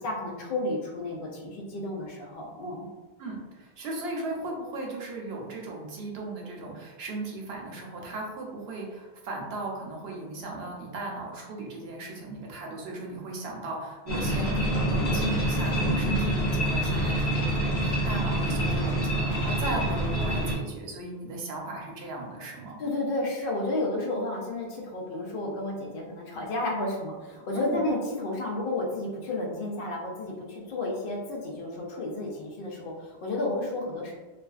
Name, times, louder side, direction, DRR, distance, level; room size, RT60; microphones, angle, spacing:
voice 1, 0.0-2.9 22.8-34.1, left 2 dB, 65° left, -1 dB, 0.7 m, -32 dB
voice 2, 3.2-22.8 27.5-27.8, right 2 dB, 75° right, -1 dB, 0.8 m, -37 dB
sound 1, 14.1-20.6, right 1 dB, 85° left, 1.0 m, -26 dB
2.4 x 2.3 x 2.3 m, 1.2 s
omnidirectional pair, 1.1 m